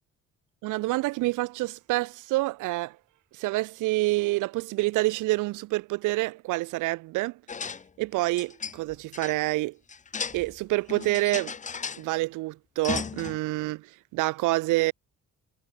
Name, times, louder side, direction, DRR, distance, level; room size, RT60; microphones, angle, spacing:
voice 1, 0.6-3.0 3.3-7.4 8.0-9.8 10.3-11.5 12.0-14.9, right 20 dB, 90° right, 0.5 m, -27 dB
sound 1, 7.5-7.8 8.2-9.4 9.9-10.6 10.9-12.0 12.8-13.4, left 6 dB, 25° left, 0.7 m, -35 dB
cardioid pair, 90°, 30 cm